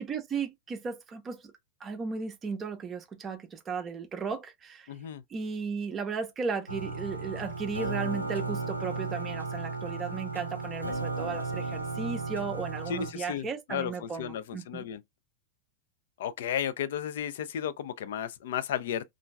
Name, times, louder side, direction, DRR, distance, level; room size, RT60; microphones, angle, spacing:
voice 1, 0.0-1.4 1.8-4.9 5.3-14.9, right 5 dB, 25° right, 0.5 m, -35 dB
voice 2, 4.9-5.2 12.9-15.0 16.2-19.1, left 9 dB, 55° left, 0.4 m, -34 dB
sound 1, 6.7-13.1, right 3 dB, 85° right, 0.5 m, -34 dB
2.9 x 2.5 x 2.2 m
figure-of-eight pair, 90°, 0 cm